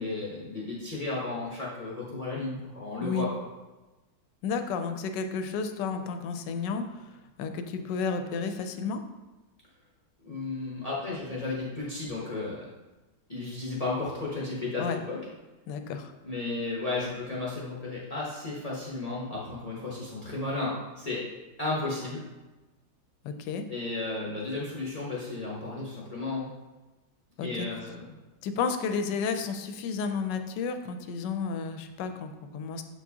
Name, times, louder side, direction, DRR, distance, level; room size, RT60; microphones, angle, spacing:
voice 1, 0.0-3.3 10.2-12.7 13.3-15.2 16.2-21.2 21.6-22.2 23.7-26.5 27.4-28.0, left 3 dB, 30° left, -6 dB, 0.8 m, -33 dB
voice 2, 4.4-7.1 7.4-9.0 14.8-15.0 15.7-16.1 23.2-23.6 27.4-27.7 28.4-32.8, left 5 dB, 85° left, 8 dB, 1.2 m, -32 dB
7.4 x 4.5 x 2.8 m, 1.1 s
omnidirectional pair, 1.9 m